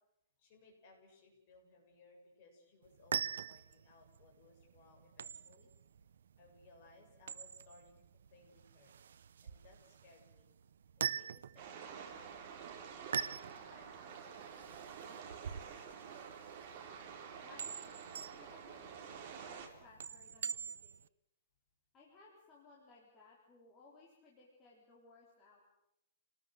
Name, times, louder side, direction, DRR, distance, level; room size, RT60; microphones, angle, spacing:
voice 1, 0.4-5.7 6.4-8.0 8.3-8.9 9.4-10.5 11.0-12.8 13.1-16.1, left 3 dB, 35° left, 1 dB, 7.6 m, -64 dB
sound 1, 2.8-21.1, right 7 dB, 90° right, 0.8 m, -44 dB
sound 2, 11.6-19.7, right 7 dB, 30° right, 3.6 m, -49 dB
voice 2, 17.4-21.0 21.9-25.7, left 3 dB, 15° left, -4 dB, 3.9 m, -62 dB
29.0 x 19.5 x 7.9 m, 0.81 s
hypercardioid pair, 180°, 0 cm